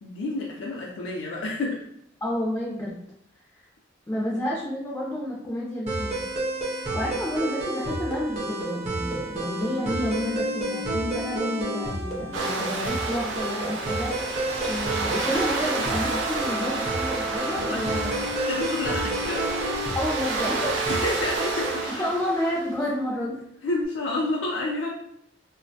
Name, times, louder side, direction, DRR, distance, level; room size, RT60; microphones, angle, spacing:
voice 1, 0.0-1.8 4.1-4.2 7.0-7.1 17.6-18.0 18.5-19.6 20.9-22.0 23.6-24.9, left 2 dB, 85° left, -2 dB, 0.4 m, -30 dB
voice 2, 2.2-3.0 4.1-6.2 6.9-18.1 19.0-19.1 19.9-20.9 22.0-23.4, left 1 dB, 15° left, -4 dB, 0.3 m, -30 dB
sound 1, 5.9-21.9, right 2 dB, 35° right, 0.5 m, -30 dB
sound 2, 12.3-22.8, right 3 dB, 85° right, 0.4 m, -31 dB
2.4 x 2.1 x 2.6 m, 0.73 s
head